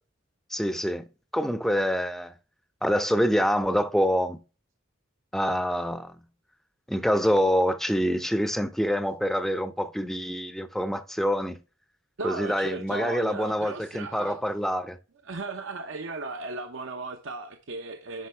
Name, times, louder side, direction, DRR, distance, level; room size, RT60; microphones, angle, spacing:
voice 1, 0.5-1.1 1.3-2.3 2.8-4.4 5.3-6.2 6.9-11.6 12.2-15.0, equal, ahead, 0.5 m, -26 dB
voice 2, 12.2-14.4 15.2-18.3, right 3 dB, 70° right, 0.8 m, -36 dB
10.0 x 5.1 x 3.3 m
head